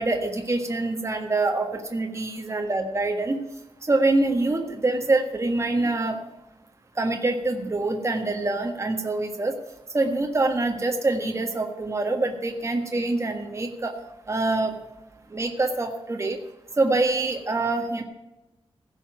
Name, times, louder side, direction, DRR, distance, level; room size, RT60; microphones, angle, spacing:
voice 1, 0.0-3.4 3.8-6.2 7.0-9.6 9.9-13.9 14.3-14.7 15.3-16.4 16.8-18.0, right 2 dB, 30° right, 3 dB, 1.5 m, -25 dB
16.0 x 5.7 x 9.3 m, 0.98 s
wide cardioid pair, 145°, 10 cm